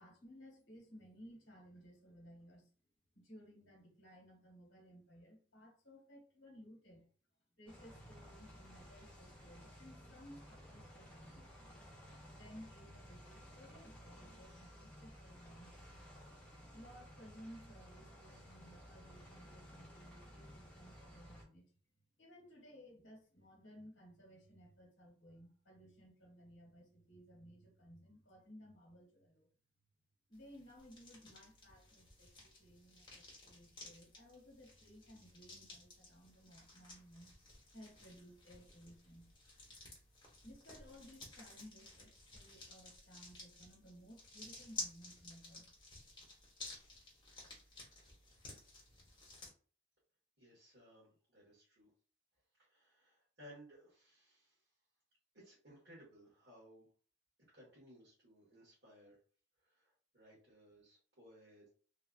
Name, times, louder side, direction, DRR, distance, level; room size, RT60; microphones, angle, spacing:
voice 1, 0.0-2.7 3.1-7.1 7.6-11.6 12.3-16.0 16.7-21.7 22.2-29.5 30.3-37.3 37.7-39.3 40.4-45.7, equal, 70° left, 0 dB, 1.2 m, -58 dB
sound 1, 7.7-21.4, equal, 5° left, 0.7 m, -56 dB
sound 2, 30.3-49.5, left 2 dB, 25° left, 1.0 m, -54 dB
voice 2, 50.4-51.9 52.6-54.7 55.3-56.9 57.5-59.2 59.6-61.7, equal, 60° right, -8 dB, 1.4 m, -61 dB
3.2 x 2.4 x 2.3 m, 0.40 s
head